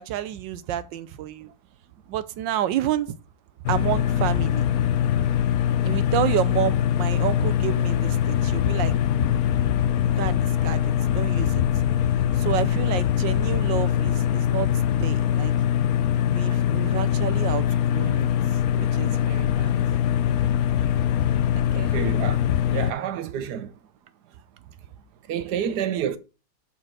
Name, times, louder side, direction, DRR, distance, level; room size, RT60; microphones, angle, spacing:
voice 1, 0.0-1.5 2.1-3.2 3.7-4.7 5.8-8.9 10.1-11.6 12.3-14.7 15.0-15.5 16.3-17.6 17.9-18.3 18.7-19.7 21.7-22.0, right 11 dB, 90° right, 1.4 m, -29 dB
sound 1, 3.7-22.9, left 10 dB, 70° left, 0.9 m, -22 dB
voice 2, 21.8-22.4 22.7-23.7 25.3-26.2, right 9 dB, 70° right, 1.3 m, -28 dB
7.5 x 4.0 x 6.1 m
omnidirectional pair, 2.0 m